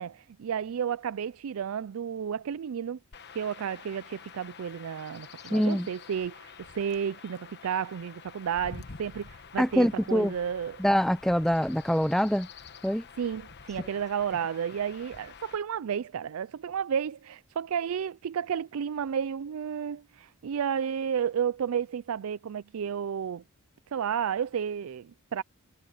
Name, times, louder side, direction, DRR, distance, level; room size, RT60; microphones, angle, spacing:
voice 1, 0.0-3.0 3.3-10.8 13.2-23.4 23.9-25.4, right 8 dB, 70° right, 0.4 m, -32 dB
Chirp tweet / Wind / Stream, 3.1-15.6, left 5 dB, 50° left, 1.1 m, -48 dB
voice 2, 5.5-5.9 9.6-10.3 10.8-12.5 12.8-13.0, equal, ahead, 0.5 m, -24 dB
head